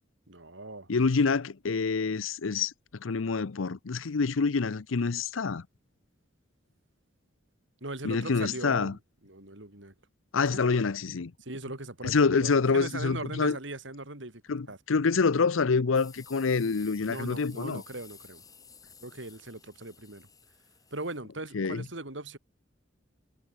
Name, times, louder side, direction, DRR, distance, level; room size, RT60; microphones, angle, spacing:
voice 1, 0.3-0.9 7.8-9.0 9.2-9.9 10.5-10.6 11.4-14.8 17.1-18.4 19.0-20.3 20.9-22.4, right 2 dB, 65° right, 4.2 m, -39 dB
voice 2, 0.9-2.7 3.0-5.6 8.0-8.9 10.3-11.3 12.0-13.6 14.5-17.8 21.5-21.8, left 4 dB, 90° left, 0.7 m, -26 dB
sound 1, 15.9-21.2, left 6 dB, 20° left, 6.7 m, -53 dB
head